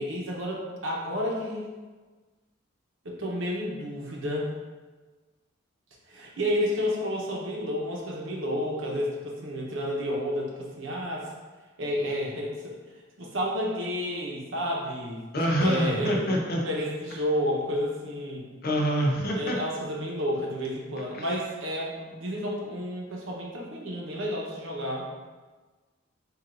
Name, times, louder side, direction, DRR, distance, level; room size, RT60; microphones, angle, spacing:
voice 1, 0.0-1.7 3.0-4.5 6.1-11.3 11.8-12.7 13.2-15.2 15.6-18.5 19.3-25.0, equal, 70° right, -2 dB, 1.0 m, -31 dB
voice 2, 15.3-16.6 18.6-19.6 21.1-21.2, equal, 45° left, -1 dB, 0.8 m, -25 dB
7.8 x 2.6 x 2.6 m, 1.3 s
head